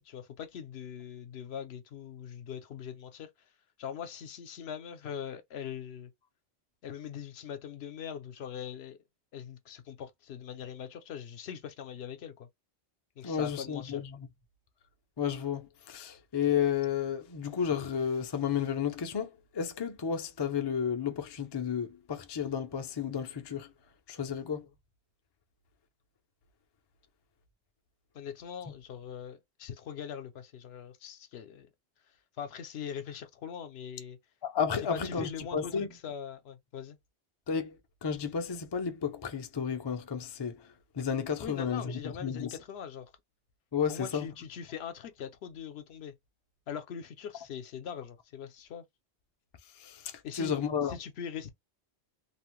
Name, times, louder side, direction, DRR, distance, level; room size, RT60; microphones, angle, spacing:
voice 1, 0.0-3.3 3.8-6.1 6.8-9.0 9.3-12.5 13.2-14.0 24.2-24.4 28.1-31.7 32.4-34.2 34.7-37.0 41.4-43.1 43.9-46.1 46.7-48.8 50.2-50.5 50.9-51.5, left 8 dB, 70° left, 0.8 m, -41 dB
voice 2, 13.2-14.3 15.2-23.7 24.1-24.7 34.4-35.9 37.5-42.5 43.7-44.3 49.8-51.0, left 7 dB, 40° left, 0.3 m, -32 dB
2.8 x 2.1 x 3.0 m
omnidirectional pair, 1.1 m